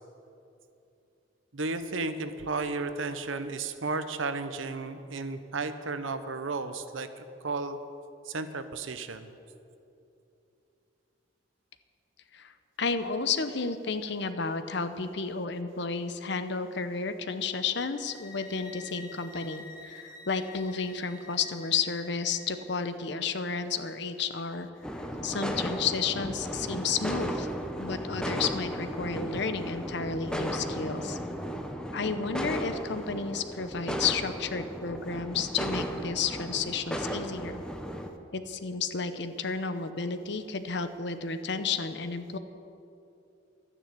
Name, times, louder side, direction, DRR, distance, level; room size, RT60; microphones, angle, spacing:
voice 1, 1.5-7.8 8.3-9.3, right 3 dB, 90° right, 10 dB, 0.9 m, -33 dB
voice 2, 12.8-24.7 25.2-27.5 27.8-31.2 31.9-37.6 38.3-42.4, left 5 dB, 60° left, 10 dB, 0.8 m, -32 dB
sound 1, 17.9-22.8, left 3 dB, 20° left, 1.3 m, -49 dB
sound 2, 24.8-38.1, equal, 5° left, 0.8 m, -35 dB
12.0 x 10.0 x 8.4 m, 2.8 s
head